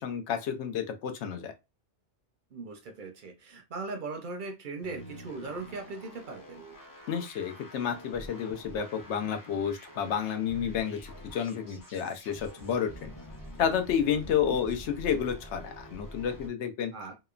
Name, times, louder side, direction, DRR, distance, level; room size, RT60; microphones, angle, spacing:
voice 1, 0.0-1.5 7.1-13.1 13.6-16.9, left 8 dB, 80° left, 0.9 m, -30 dB
voice 2, 2.5-6.6 14.2-14.6 16.9-17.1, right 3 dB, 55° right, 0.6 m, -39 dB
sound 1, 4.8-16.5, equal, 25° left, 0.4 m, -47 dB
2.8 x 2.1 x 2.4 m
omnidirectional pair, 1.2 m